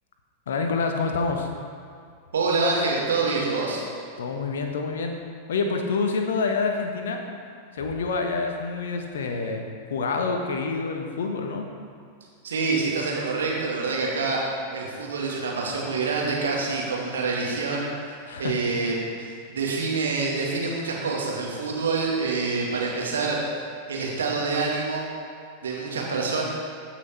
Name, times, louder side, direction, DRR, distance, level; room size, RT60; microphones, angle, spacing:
voice 1, 0.5-1.5 4.2-5.2 5.5-7.2 7.7-11.6 18.3-18.6, left 4 dB, 60° left, 4 dB, 1.2 m, -27 dB
voice 2, 2.3-3.8 12.4-14.4 14.7-17.9 18.4-19.0 19.5-23.4 23.9-25.0 25.6-26.4, right 4 dB, 65° right, -2 dB, 2.3 m, -26 dB
15.5 x 6.2 x 4.6 m, 2.2 s
figure-of-eight pair, 90°, 0 cm